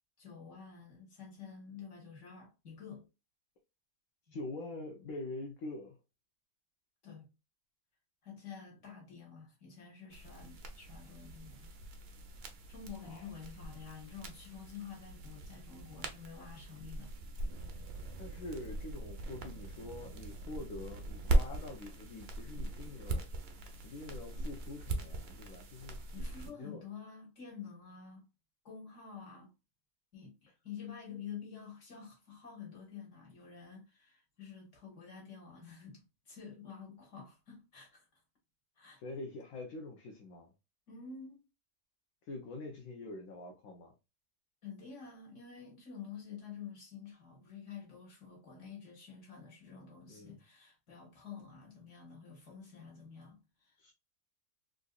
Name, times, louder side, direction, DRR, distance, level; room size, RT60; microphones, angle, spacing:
voice 1, 0.2-3.1 4.3-4.4 7.0-7.3 8.2-11.7 12.7-17.1 26.1-28.3 28.7-29.5 30.1-38.1 38.8-39.0 40.9-41.4 44.6-53.7, left 6 dB, 50° left, 1.7 m, -49 dB
voice 2, 4.3-6.0 13.0-13.3 18.2-23.3 23.8-26.0 26.4-26.8 39.0-40.5 42.2-43.9 50.1-50.4 53.8-53.9, left 2 dB, 65° left, 1.0 m, -45 dB
sound 1, 10.1-26.5, right 2 dB, 65° right, 0.6 m, -39 dB
3.7 x 2.6 x 2.3 m
omnidirectional pair, 1.7 m